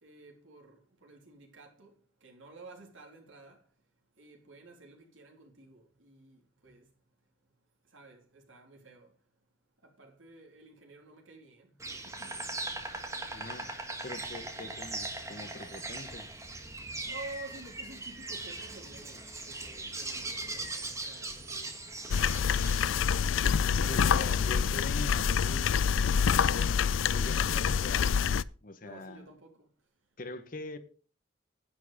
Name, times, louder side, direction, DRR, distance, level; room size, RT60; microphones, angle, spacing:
voice 1, 0.0-1.9 2.2-3.6 4.2-6.8 7.9-9.1 9.8-12.4 14.6-14.8 17.0-21.7 23.6-24.6 28.8-29.7, right 3 dB, 85° right, 3.3 m, -51 dB
Insect, 11.8-23.0, right 2 dB, 15° right, 1.5 m, -40 dB
voice 2, 13.3-13.7 14.0-16.3 22.0-26.8 27.1-29.3 30.2-30.8, left 2 dB, 45° left, 1.2 m, -44 dB
sound 1, 22.1-28.4, left 7 dB, 80° left, 0.4 m, -26 dB
10.5 x 8.6 x 5.2 m
head